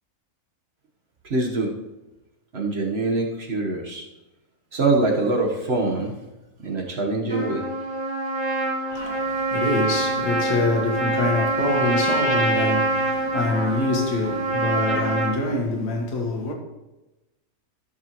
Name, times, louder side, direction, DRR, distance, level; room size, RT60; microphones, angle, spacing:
voice 1, 1.3-1.7 2.5-4.0 4.7-6.2 6.6-7.7, right 2 dB, 45° right, 1.3 m, -24 dB
Trumpet, 7.3-15.3, right 2 dB, 15° right, 2.8 m, -25 dB
voice 2, 8.9-16.5, left 2 dB, 85° left, 2.0 m, -25 dB
13.0 x 6.7 x 3.0 m
omnidirectional pair, 1.7 m